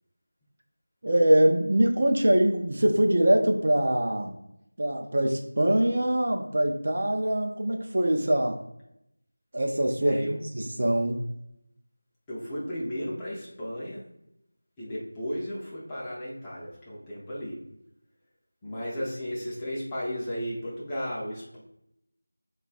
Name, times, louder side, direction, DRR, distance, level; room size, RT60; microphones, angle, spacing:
voice 1, 1.0-4.3 4.8-8.6 9.5-11.3, right 1 dB, 45° right, 2 dB, 0.4 m, -23 dB
voice 2, 10.0-10.4 12.3-14.0 14.8-17.6 18.6-21.6, equal, 10° left, -8 dB, 0.5 m, -34 dB
3.8 x 2.3 x 3.7 m, 0.81 s
figure-of-eight pair, 170°, 0 cm